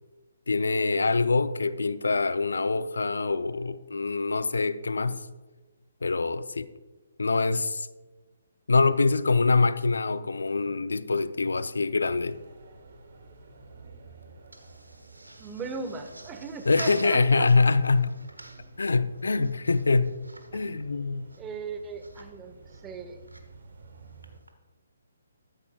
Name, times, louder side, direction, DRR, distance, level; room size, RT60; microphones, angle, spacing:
voice 1, 0.5-5.2 6.0-6.7 7.2-7.9 8.7-12.4 16.7-18.2 18.8-20.1 20.5-21.3, left 3 dB, 75° left, 0.5 m, -24 dB
sound 1, 12.0-24.4, right 3 dB, 55° right, 2.3 m, -51 dB
sound 2, 13.6-24.5, right 1 dB, 90° right, 1.5 m, -48 dB
voice 2, 15.4-17.5 20.5-20.7 21.4-22.5 22.8-23.2, right 4 dB, 15° right, 1.0 m, -38 dB
14.0 x 13.5 x 2.3 m
figure-of-eight pair, 140°, 0 cm